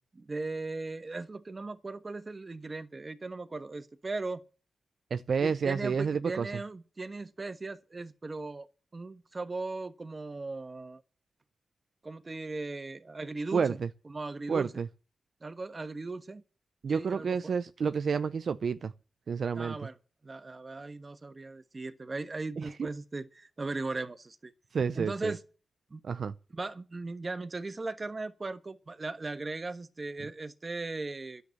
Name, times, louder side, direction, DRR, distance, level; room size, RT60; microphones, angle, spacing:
voice 1, 0.1-4.4 5.4-11.0 12.0-13.8 14.1-14.7 15.4-16.4 16.9-17.5 19.6-20.0 20.2-24.5 24.9-25.4 25.9-26.0 26.5-31.4, right 3 dB, 40° right, 1.3 m, -38 dB
voice 2, 5.1-6.5 13.5-13.9 14.5-14.9 16.8-18.9 19.3-19.8 22.6-22.7 24.7-25.3 26.0-26.3, right 6 dB, 70° right, 0.6 m, -30 dB
10.5 x 8.2 x 9.5 m
cardioid pair, 45°, 0 cm